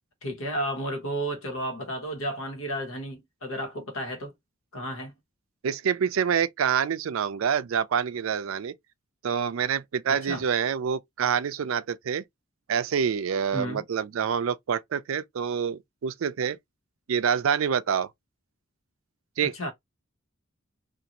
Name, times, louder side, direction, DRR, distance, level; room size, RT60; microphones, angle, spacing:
voice 1, 0.2-4.3 4.7-5.1 10.1-10.4 13.5-13.8 19.4-19.7, equal, 90° left, 1.2 m, -32 dB
voice 2, 5.6-8.7 9.2-12.2 12.7-16.6 17.1-18.1 19.4-19.5, right 7 dB, 75° right, 0.4 m, -26 dB
2.6 x 2.4 x 2.9 m
head